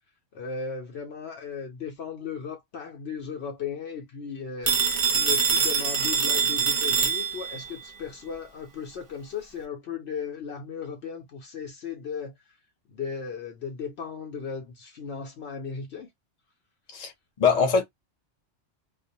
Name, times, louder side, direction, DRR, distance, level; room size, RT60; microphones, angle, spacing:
voice 1, 0.3-12.6 12.9-16.1, left 6 dB, 65° left, 0.8 m, -36 dB
Telephone, 4.7-7.7, right 5 dB, 60° right, 0.3 m, -24 dB
voice 2, 17.4-17.8, left 5 dB, 35° left, 0.8 m, -21 dB
2.3 x 2.0 x 2.7 m
omnidirectional pair, 1.2 m